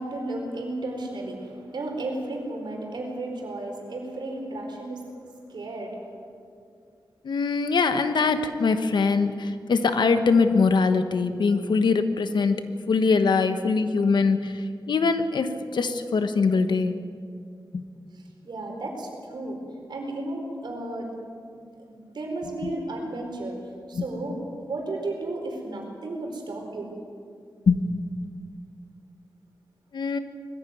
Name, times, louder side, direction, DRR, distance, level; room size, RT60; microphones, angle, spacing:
voice 1, 0.0-5.1 5.5-6.0 18.1-19.6 19.9-21.1 21.9-23.6 23.9-26.9, right 2 dB, 75° right, 1 dB, 4.5 m, -33 dB
voice 2, 7.2-12.6 12.9-17.0 17.7-17.8 23.9-24.0 27.7-27.8 28.2-28.3 29.9-30.2, left 4 dB, 75° left, 9 dB, 1.3 m, -22 dB
21.0 x 14.5 x 9.4 m, 2.4 s
wide cardioid pair, 120°, 8 cm